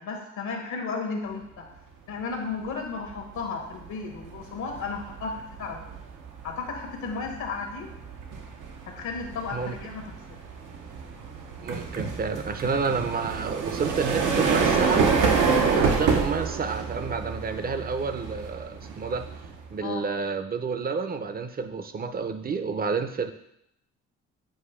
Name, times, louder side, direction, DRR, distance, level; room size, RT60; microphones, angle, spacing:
voice 1, 0.0-1.7 2.1-5.9 6.4-7.9 8.9-10.1 19.8-20.0, left 4 dB, 75° left, 2 dB, 1.2 m, -34 dB
sound 1, 2.4-2.7 3.0-19.8, right 5 dB, 80° right, 0.9 m, -28 dB
voice 2, 11.6-15.1 15.5-19.3 19.7-23.3, right 5 dB, 30° right, 9 dB, 0.6 m, -30 dB
7.7 x 2.6 x 4.9 m, 0.76 s
cardioid pair, 90°, 30 cm